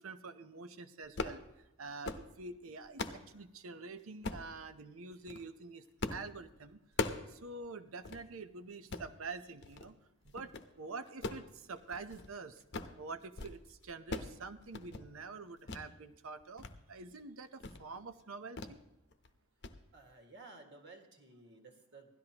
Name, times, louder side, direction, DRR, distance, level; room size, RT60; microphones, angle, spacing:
voice 1, 0.0-10.0 10.2-12.6 13.0-18.8, right 4 dB, 75° right, 12 dB, 0.8 m, -47 dB
sound 1, 1.0-1.4 1.9-2.3 2.7-3.2 4.2-4.5 5.1-5.4 6.0-6.3 6.6-7.3 7.6-7.7 8.0-8.2 8.7-9.1 9.6-9.9 10.3-10.7 11.1-12.3 12.6-13.0 13.2-13.6 13.8-14.4 14.6-15.1 15.7-15.9 16.3-16.7 17.1-17.2 17.6-17.8 18.6-18.8 19.1-19.3 19.6-19.8, left 3 dB, 55° left, 0.8 m, -40 dB
voice 2, 19.9-22.2, right 3 dB, 55° right, 4 dB, 1.9 m, -55 dB
17.0 x 13.0 x 2.9 m, 0.92 s
head